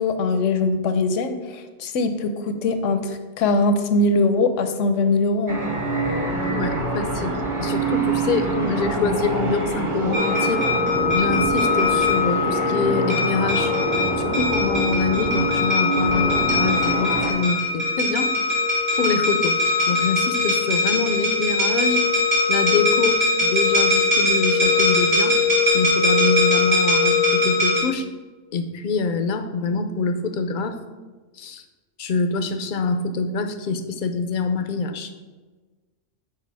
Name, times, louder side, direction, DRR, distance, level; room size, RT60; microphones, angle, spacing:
voice 1, 0.0-5.7, left 3 dB, 80° left, 8 dB, 1.0 m, -22 dB
sound 1, 5.5-17.3, right 3 dB, 25° right, 0.9 m, -25 dB
voice 2, 6.5-10.7 11.1-13.7 14.2-18.3 19.0-19.6 19.9-22.0 22.5-25.4 25.7-28.1 28.5-30.8 31.4-31.6 32.0-35.1, left 4 dB, 55° left, 8 dB, 0.6 m, -25 dB
sound 2, 10.1-27.8, left 3 dB, 70° right, 3.0 m, -21 dB
6.8 x 4.8 x 4.7 m, 1.3 s
omnidirectional pair, 1.3 m